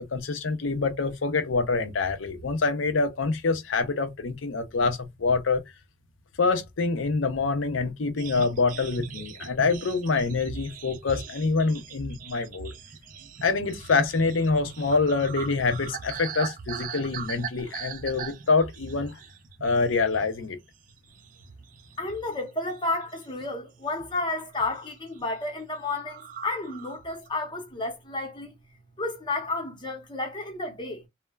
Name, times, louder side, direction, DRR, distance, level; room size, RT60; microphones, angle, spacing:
voice 1, 0.0-5.6 6.4-12.7 13.4-19.2 19.6-20.6, left 4 dB, 85° left, 0.6 m, -26 dB
sound 1, 8.2-19.9 20.2-20.5 20.9-22.4 22.7-23.5 24.0-24.2 24.5-24.9 25.2-25.3 25.5-25.6 25.9-27.3, right 7 dB, 45° right, 0.3 m, -40 dB
voice 2, 22.0-28.5 29.0-31.0, left 2 dB, 25° left, 0.8 m, -31 dB
3.2 x 2.1 x 2.3 m
head